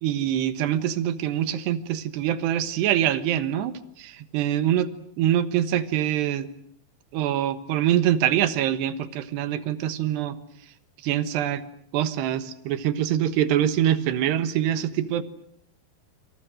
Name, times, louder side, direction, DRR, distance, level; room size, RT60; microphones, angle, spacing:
voice 1, 0.0-6.5 7.1-10.4 11.0-11.6 11.9-15.2, right 11 dB, 85° right, 13 dB, 3.5 m, -24 dB
27.5 x 26.5 x 7.8 m, 0.66 s
omnidirectional pair, 4.7 m